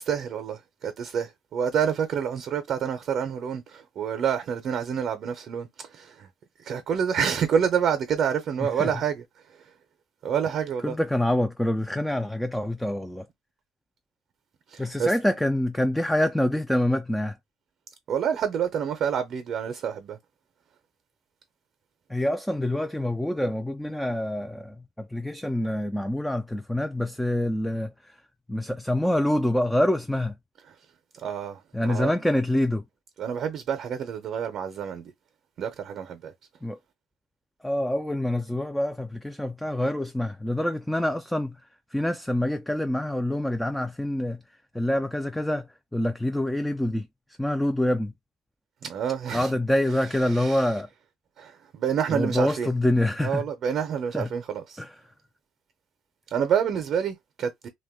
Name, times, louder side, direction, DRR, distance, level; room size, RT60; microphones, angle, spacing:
voice 1, 0.0-6.3 6.6-9.2 10.2-10.9 14.7-15.1 18.1-20.2 31.1-32.1 33.2-35.1 35.6-36.3 48.8-49.5 50.3-50.7 51.4-52.7 53.2-54.8 56.3-57.7, right 8 dB, 55° right, 0.6 m, -28 dB
voice 2, 8.6-8.9 10.8-13.3 14.8-17.4 22.1-28.2 28.5-30.3 31.7-32.8 36.6-36.8 37.6-41.6 41.9-44.4 44.7-47.1 47.4-48.1 49.3-50.9 52.1-53.4 54.1-54.3 54.8-55.0, left 1 dB, 5° left, 0.3 m, -26 dB
2.5 x 2.2 x 3.5 m
supercardioid pair, 90°, 0 cm